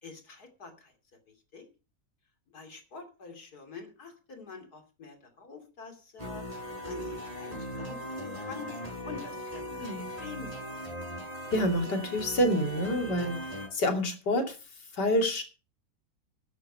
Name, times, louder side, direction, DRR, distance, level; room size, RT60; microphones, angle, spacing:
voice 1, 0.0-0.9 1.5-1.7 2.5-6.4 6.8-8.7 9.0-9.7 10.0-10.5, left 4 dB, 65° left, 7 dB, 3.3 m, -46 dB
sound 1, 6.2-13.7, equal, 20° right, 5.6 m, -39 dB
voice 2, 9.7-10.1 11.5-13.4 13.7-14.6 14.9-15.4, equal, 85° left, 5 dB, 3.3 m, -27 dB
12.5 x 10.5 x 5.5 m, 0.33 s
omnidirectional pair, 1.8 m